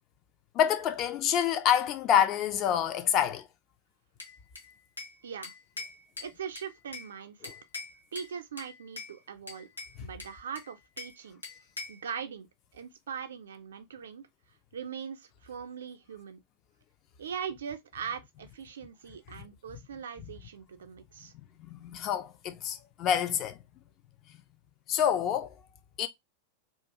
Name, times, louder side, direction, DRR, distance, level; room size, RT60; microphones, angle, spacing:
voice 1, 0.5-3.5 7.4-7.5 10.0-10.1 21.2-23.6 24.9-25.5 26.0-26.1, left 9 dB, 35° left, 0.4 m, -27 dB
Bell / Glass, 4.2-5.2 5.4-7.1 7.4-8.3 8.6-9.1 9.5-11.2 11.4-12.0, left 3 dB, 80° left, 0.7 m, -43 dB
voice 2, 5.2-5.5 6.2-7.5 8.1-9.7 10.0-11.4 11.9-12.5 12.7-14.3 14.7-16.4 17.2-21.3, right 7 dB, 65° right, 0.4 m, -41 dB
2.4 x 2.3 x 2.7 m
figure-of-eight pair, 90°, 0 cm